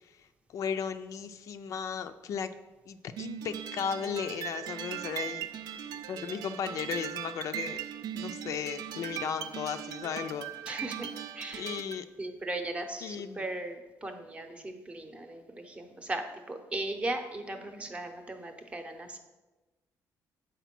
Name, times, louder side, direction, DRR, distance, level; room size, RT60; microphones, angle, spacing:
voice 1, 0.5-2.5 2.9-5.5 6.1-7.8 8.2-10.5 11.6-12.1 13.0-13.4, left 7 dB, 55° left, 9 dB, 0.4 m, -35 dB
sound 1, 3.2-12.0, right 10 dB, 90° right, 0.5 m, -39 dB
voice 2, 10.7-11.1 11.4-11.7 12.2-19.2, right 2 dB, 20° right, 6 dB, 0.7 m, -37 dB
8.0 x 4.5 x 5.9 m, 1.1 s
cardioid pair, 170°, 7 cm